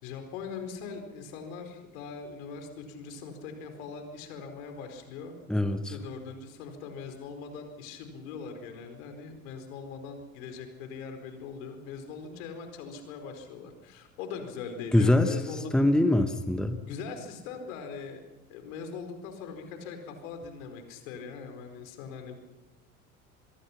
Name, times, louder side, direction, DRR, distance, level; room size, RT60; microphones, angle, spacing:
voice 1, 0.0-5.3 5.9-15.7 16.8-18.2 18.5-22.4, left 5 dB, 65° left, 6 dB, 4.5 m, -41 dB
voice 2, 5.5-5.9 14.9-15.4 15.7-16.8, left 1 dB, ahead, 8 dB, 1.6 m, -23 dB
25.5 x 22.0 x 5.9 m, 1.1 s
figure-of-eight pair, 70°, 43 cm